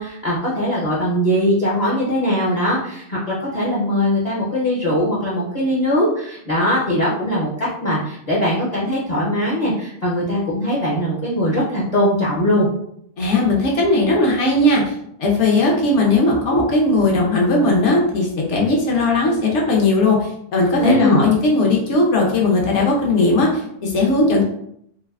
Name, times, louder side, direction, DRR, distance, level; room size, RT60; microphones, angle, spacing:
voice 1, 0.0-12.7 20.8-21.2, equal, 45° left, -6 dB, 0.5 m, -20 dB
voice 2, 13.2-14.9 15.2-24.4, left 2 dB, 60° left, -2 dB, 0.9 m, -17 dB
3.2 x 2.6 x 2.4 m, 0.70 s
omnidirectional pair, 1.6 m